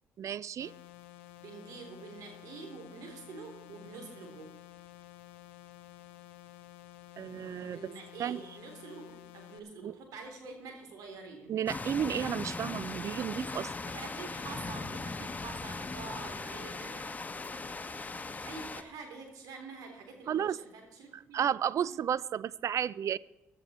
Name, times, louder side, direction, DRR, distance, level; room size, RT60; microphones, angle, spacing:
voice 1, 0.2-0.7 7.2-7.8 8.2-8.4 9.8-9.9 11.5-13.7 20.3-20.6 21.1-23.2, right 9 dB, 55° right, 21 dB, 0.4 m, -32 dB
sound 1, 0.6-9.6, left 14 dB, 90° left, 0.7 m, -52 dB
voice 2, 1.4-4.5 7.7-11.5 13.9-17.4 17.9-21.4 21.8-22.0, right 4 dB, 70° right, 3 dB, 3.5 m, -47 dB
sound 2, 11.7-18.8, left 3 dB, 25° left, 1.2 m, -39 dB
15.0 x 12.5 x 4.4 m, 0.94 s
hypercardioid pair, 55°, 6 cm